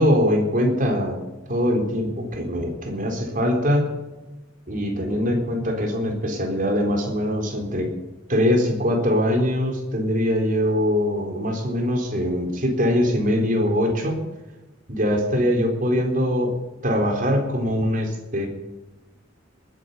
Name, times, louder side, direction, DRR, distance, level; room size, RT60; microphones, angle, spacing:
voice 1, 0.0-3.9 4.7-7.9 8.3-14.2 14.9-16.5 16.8-18.5, equal, 45° right, 2 dB, 3.9 m, -22 dB
20.0 x 10.0 x 6.8 m, 1.1 s
head